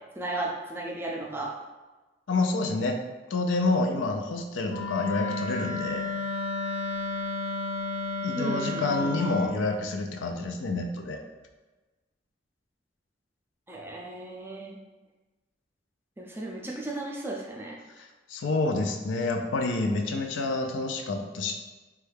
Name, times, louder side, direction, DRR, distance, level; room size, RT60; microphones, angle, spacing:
voice 1, 0.2-1.5 8.3-9.3 13.7-14.8 16.2-17.8, right 2 dB, 10° right, -2 dB, 0.4 m, -35 dB
voice 2, 2.3-3.0 3.3-6.0 8.2-11.2 18.0-21.5, left 2 dB, 90° left, 5 dB, 0.4 m, -28 dB
Wind instrument woodwind instrument, 4.7-9.5, left 3 dB, 60° left, 0.8 m, -32 dB
3.1 x 2.3 x 3.3 m, 1.2 s
head